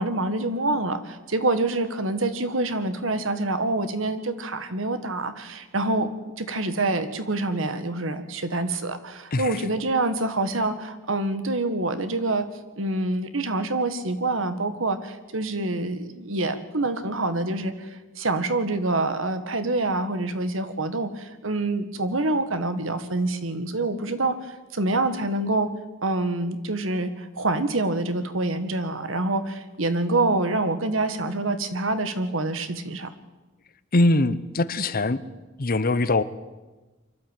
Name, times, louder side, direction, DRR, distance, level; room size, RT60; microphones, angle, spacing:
voice 1, 0.0-6.1 6.4-12.4 12.8-17.9 18.2-25.7 26.0-33.1, right 2 dB, 75° right, 10 dB, 1.7 m, -26 dB
voice 2, 33.9-35.2 35.6-36.2, left 2 dB, 45° left, 15 dB, 0.9 m, -22 dB
24.0 x 12.5 x 9.1 m, 1.2 s
head